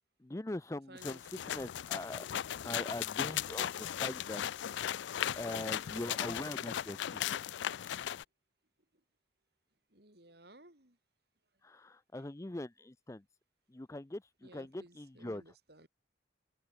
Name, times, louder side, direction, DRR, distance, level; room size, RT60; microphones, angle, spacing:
voice 1, 0.2-2.3 2.6-4.4 5.4-7.5 11.6-13.2 13.7-15.4, left 1 dB, 15° left, 0.5 m, -42 dB
voice 2, 0.9-1.6 4.6-4.9 5.9-6.1 6.4-6.7 9.9-11.0 12.1-12.3 14.4-15.9, right 2 dB, 55° right, 4.0 m, -58 dB
sound 1, 1.0-8.2, left 10 dB, 75° left, 0.4 m, -37 dB
open air
head